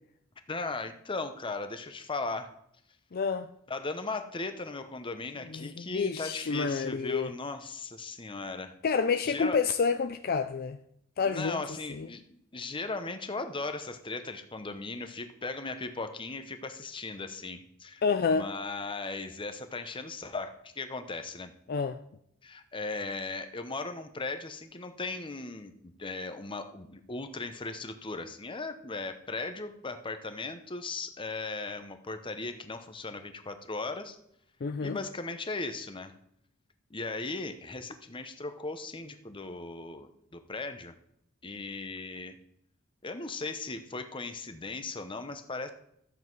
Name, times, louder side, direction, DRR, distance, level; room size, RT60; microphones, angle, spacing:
voice 1, 0.5-2.5 3.7-8.7 9.3-9.6 11.2-18.0 18.3-21.5 22.4-25.7 26.0-34.2 34.8-36.1 36.9-41.0 41.4-42.3 43.0-45.7, left 3 dB, 25° left, 0.8 m, -37 dB
voice 2, 3.1-3.5 5.5-7.3 8.8-10.8 11.2-11.6 11.9-12.1 18.0-18.5 21.7-22.0 34.6-35.0, left 5 dB, 45° left, 0.4 m, -29 dB
13.0 x 7.9 x 4.6 m
head